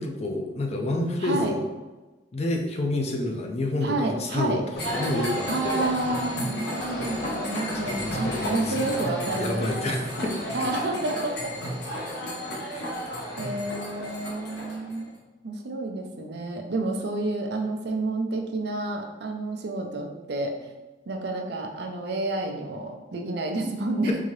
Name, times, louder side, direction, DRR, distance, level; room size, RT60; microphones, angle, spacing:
voice 1, 0.0-1.6 2.3-4.6 4.9-5.8 7.2-7.4 7.9-10.3 10.6-10.7 12.7-12.9 24.1-24.2, left 2 dB, 35° left, 2 dB, 0.5 m, -29 dB
voice 2, 1.2-1.5 3.8-4.6 5.5-9.9 10.5-11.5 12.6-12.7 13.4-15.2 15.4-20.6 21.1-24.2, right 2 dB, 65° right, 3 dB, 0.5 m, -30 dB
sound 1, 4.7-15.0, equal, 65° left, 0.9 m, -32 dB
3.7 x 2.7 x 3.1 m, 1.2 s
head